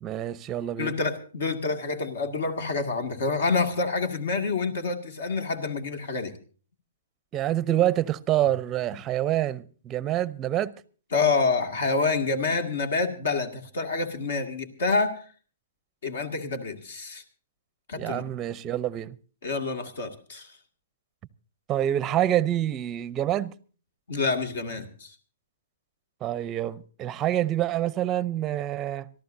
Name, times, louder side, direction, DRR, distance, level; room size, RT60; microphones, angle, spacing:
voice 1, 0.0-1.0 7.3-10.7 18.0-19.1 21.7-23.5 26.2-29.1, right 12 dB, 25° right, 0.6 m, -27 dB
voice 2, 0.8-6.3 11.1-15.2 16.0-17.2 17.9-18.2 19.4-20.5 24.1-25.1, left 4 dB, 65° left, 2.1 m, -27 dB
26.0 x 13.5 x 2.7 m
hypercardioid pair, 125°, 0 cm